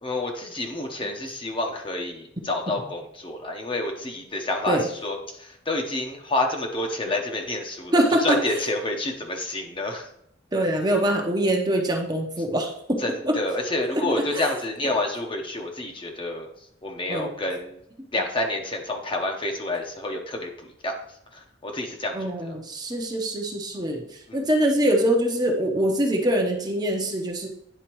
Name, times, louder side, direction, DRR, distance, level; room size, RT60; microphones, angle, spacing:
voice 1, 0.0-10.1 13.0-16.5 16.8-17.8 18.1-20.5 20.8-20.9 21.6-22.6 24.3-24.5, left 2 dB, 30° left, 2 dB, 0.9 m, -28 dB
voice 2, 7.9-8.4 10.5-13.0 13.2-13.3 14.0-14.5 17.1-17.3 22.1-24.0 24.3-27.5, right 1 dB, 20° right, 1 dB, 0.8 m, -23 dB
10.0 x 4.2 x 3.0 m, 0.73 s
head